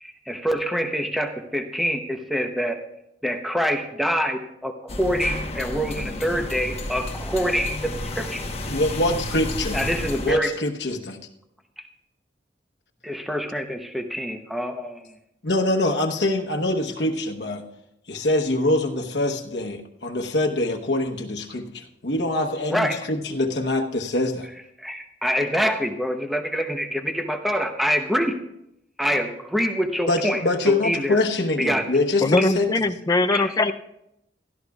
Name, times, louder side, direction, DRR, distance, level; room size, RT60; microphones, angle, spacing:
voice 1, 0.0-2.8 3.2-8.5 9.7-10.5 13.0-15.0 22.7-23.0 24.8-28.4 29.0-31.2 31.6-31.8 32.4-32.5 33.3-33.5, equal, ahead, 0.8 m, -25 dB
sound 1, 4.9-10.3, left 1 dB, 35° left, 1.1 m, -31 dB
voice 2, 8.7-9.8 10.2-11.2 15.4-17.6 18.1-24.5 30.1-32.7, left 2 dB, 75° left, 1.1 m, -24 dB
voice 3, 32.2-33.7, left 2 dB, 20° left, 0.4 m, -21 dB
16.5 x 13.0 x 2.4 m
head